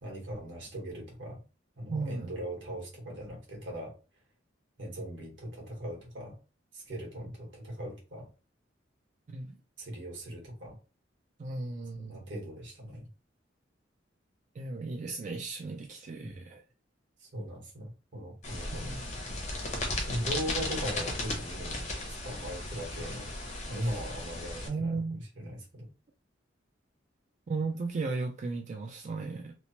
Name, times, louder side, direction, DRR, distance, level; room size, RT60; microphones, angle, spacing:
voice 1, 0.0-1.4 1.8-3.9 4.8-6.3 6.7-8.3 9.8-10.8 11.9-13.1 16.2-16.4 17.2-19.0 20.1-23.3 23.7-25.9, equal, 70° right, 1.3 m, -39 dB
voice 2, 1.9-2.3 9.3-9.6 11.4-12.2 14.6-16.6 18.7-19.1 23.8-24.0 24.7-25.2 27.5-29.5, right 3 dB, 40° right, 0.3 m, -35 dB
sound 1, 18.4-24.7, left 2 dB, 40° left, 0.7 m, -36 dB
3.0 x 2.0 x 2.8 m
head